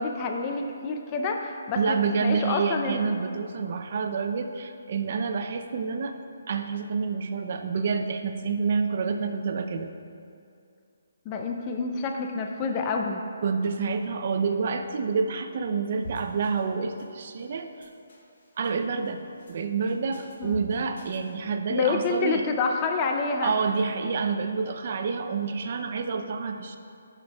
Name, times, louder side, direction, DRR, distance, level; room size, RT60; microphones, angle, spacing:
voice 1, 0.0-3.1 11.3-13.2 20.4-20.7 21.7-23.5, left 4 dB, 25° left, 3 dB, 0.5 m, -28 dB
voice 2, 1.8-6.1 6.5-9.9 13.4-17.9 18.6-19.2 19.5-22.5 23.4-26.8, right 5 dB, 50° right, 6 dB, 0.6 m, -28 dB
sound 1, 16.0-16.7 17.0-17.5 17.8-18.8 19.1-19.6 19.9-21.3, right 1 dB, 60° left, 1.5 m, -44 dB
14.0 x 5.8 x 2.4 m, 2.5 s
figure-of-eight pair, 150°, 0 cm